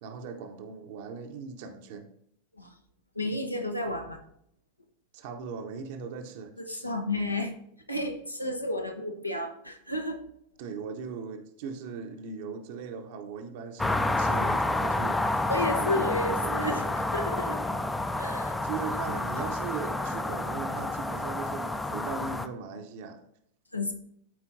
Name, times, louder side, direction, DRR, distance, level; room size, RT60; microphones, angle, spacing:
voice 1, 0.0-2.1 5.1-6.9 10.6-17.1 18.6-23.2, right 5 dB, 50° right, 0.8 m, -39 dB
voice 2, 3.1-4.2 6.6-7.5 7.9-10.2 15.5-16.8 17.1-17.6 18.2-18.6 23.7-23.9, left 1 dB, 85° left, 0.8 m, -31 dB
sound 1, 13.8-22.5, left 2 dB, 10° left, 0.4 m, -29 dB
12.0 x 4.4 x 2.6 m
figure-of-eight pair, 90°, 0 cm